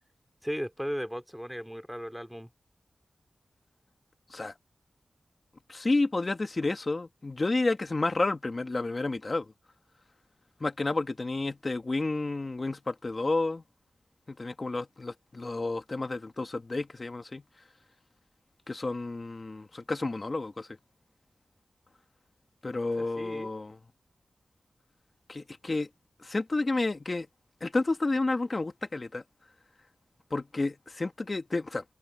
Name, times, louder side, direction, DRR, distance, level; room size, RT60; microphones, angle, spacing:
voice 1, 0.4-2.5 23.0-23.5, equal, ahead, 2.5 m, -36 dB
voice 2, 5.7-9.4 10.6-13.6 14.4-17.4 18.7-20.7 22.6-23.8 25.3-25.9 26.2-27.3 27.6-29.2 30.3-31.8, left 2 dB, 40° left, 1.6 m, -30 dB
wide cardioid pair, 85°, 0 cm